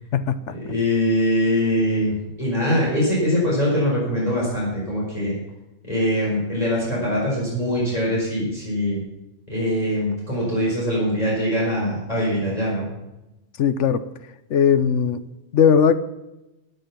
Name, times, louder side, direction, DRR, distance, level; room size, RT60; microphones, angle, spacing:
voice 1, 0.1-0.5 13.6-14.0 14.5-15.2 15.5-16.0, left 7 dB, 70° left, 13 dB, 1.0 m, -18 dB
voice 2, 0.6-5.3 5.9-9.0 9.5-12.9, equal, 30° left, -6 dB, 4.7 m, -22 dB
15.5 x 9.5 x 5.9 m, 0.96 s
omnidirectional pair, 1.3 m